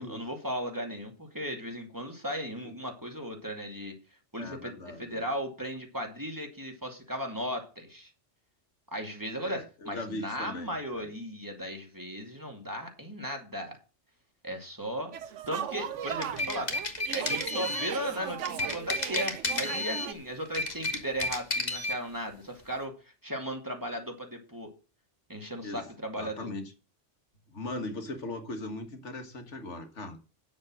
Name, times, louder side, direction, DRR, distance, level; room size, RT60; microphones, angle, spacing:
voice 1, 0.0-3.9 4.3-8.1 8.9-13.8 14.4-15.1 15.5-16.7 17.1-22.9 23.2-24.7 25.3-26.5, equal, 15° right, 2.4 m, -36 dB
voice 2, 4.4-5.2 9.4-11.1 16.3-16.4 25.6-25.8 26.2-26.7 27.5-30.2, left 2 dB, 75° left, 1.9 m, -39 dB
sound 1, 15.1-20.1, right 10 dB, 85° right, 1.1 m, -37 dB
sound 2, 16.0-18.0 18.5-20.1 20.5-22.0, left 2 dB, 35° left, 1.6 m, -32 dB
9.6 x 7.1 x 6.2 m
omnidirectional pair, 1.2 m